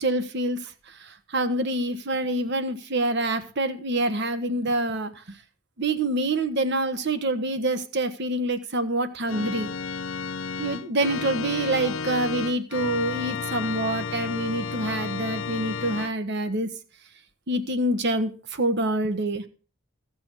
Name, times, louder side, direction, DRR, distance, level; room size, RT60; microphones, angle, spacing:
voice 1, 0.0-5.4 5.8-9.7 10.6-16.7 17.5-19.4, right 1 dB, 55° right, 10 dB, 1.3 m, -26 dB
Organ, 9.3-16.1, left 5 dB, 65° left, 0.5 m, -32 dB
16.0 x 6.2 x 6.2 m, 0.38 s
head